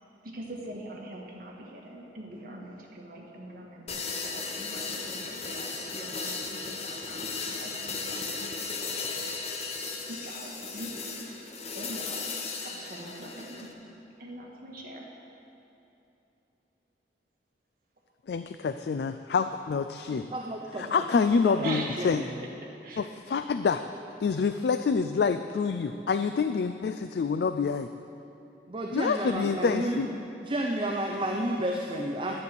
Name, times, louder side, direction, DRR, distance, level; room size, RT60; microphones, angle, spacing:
voice 1, 0.2-9.1 9.9-11.3 11.7-12.2 12.6-13.7 14.2-15.1 21.6-22.0 22.6-23.1, right 1 dB, 55° right, -1 dB, 1.7 m, -43 dB
sound 1, 3.9-13.7, left 4 dB, 35° left, 0.9 m, -36 dB
voice 2, 18.3-20.3 20.8-22.2 23.0-23.8 24.2-27.9 28.9-30.1, left 5 dB, 65° left, 9 dB, 0.3 m, -27 dB
voice 3, 20.3-22.3 28.7-30.0 30.4-32.3, right 1 dB, 30° right, 0 dB, 0.7 m, -31 dB
11.0 x 9.4 x 6.8 m, 2.8 s
head